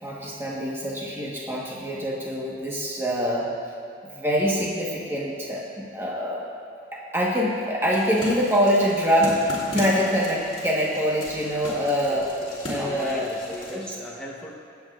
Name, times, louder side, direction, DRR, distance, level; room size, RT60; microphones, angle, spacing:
voice 1, 0.0-3.5 4.0-6.5 6.9-9.5 9.7-12.3 12.7-13.3 13.7-13.9, equal, 10° right, -4 dB, 1.4 m, -25 dB
sound 1, 7.9-13.7, left 1 dB, 30° left, 2.7 m, -37 dB
voice 2, 11.9-14.5, equal, 5° left, -4 dB, 1.0 m, -39 dB
23.0 x 8.0 x 2.5 m, 2.6 s
head